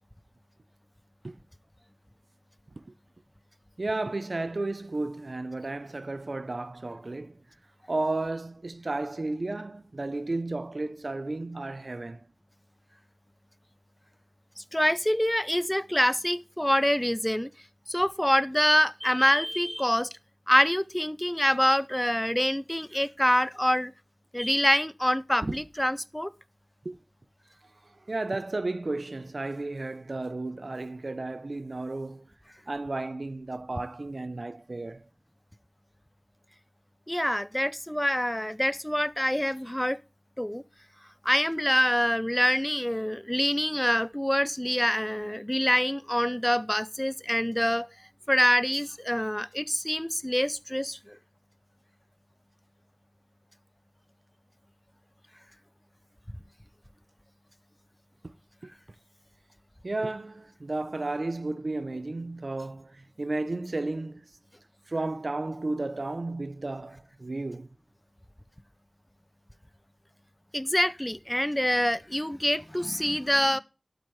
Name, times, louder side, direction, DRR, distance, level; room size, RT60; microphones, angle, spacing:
voice 1, 3.8-7.4 7.9-12.3 24.6-24.7 25.4-25.6 26.8-27.0 27.8-32.3 32.7-35.1 58.2-58.3 58.6-58.7 59.8-64.3 64.9-67.7, right 2 dB, 80° right, 0.6 m, -33 dB
voice 2, 14.6-17.5 17.9-20.1 20.5-23.9 24.3-26.3 37.1-40.0 40.4-40.6 41.2-47.9 48.3-51.2 70.5-73.6, equal, 15° left, 0.5 m, -25 dB
11.5 x 8.0 x 3.1 m
wide cardioid pair, 40°, 0 cm